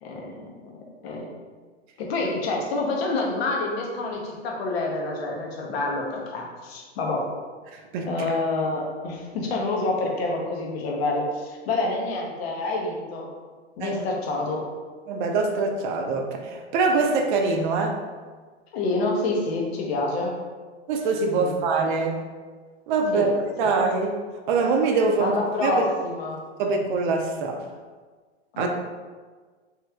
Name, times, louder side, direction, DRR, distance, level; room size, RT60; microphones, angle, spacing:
voice 1, 0.0-1.3 2.0-7.3 8.0-13.3 13.8-14.7 18.7-20.4 21.3-21.6 23.1-23.3 23.6-23.7 25.2-26.4 28.5-28.7, left 2 dB, 65° left, 0 dB, 0.8 m, -27 dB
voice 2, 7.7-8.3 13.8-14.0 15.1-18.0 20.9-22.2 22.9-24.2 24.5-25.8 26.6-27.7 28.6-28.7, right 4 dB, 50° right, 3 dB, 0.5 m, -24 dB
3.1 x 3.1 x 2.3 m, 1.4 s
hypercardioid pair, 120°, 33 cm